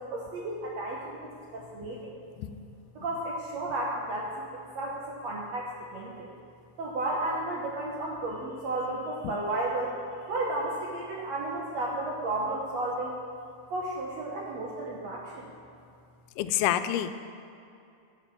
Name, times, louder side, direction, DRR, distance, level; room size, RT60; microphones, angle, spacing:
voice 1, 0.0-2.2 2.9-6.3 6.8-9.9 10.3-13.1 13.7-15.5, right 2 dB, 70° right, -2 dB, 1.6 m, -33 dB
voice 2, 16.4-17.2, left 12 dB, 90° left, 10 dB, 2.5 m, -28 dB
14.5 x 7.3 x 5.9 m, 2.5 s
omnidirectional pair, 4.3 m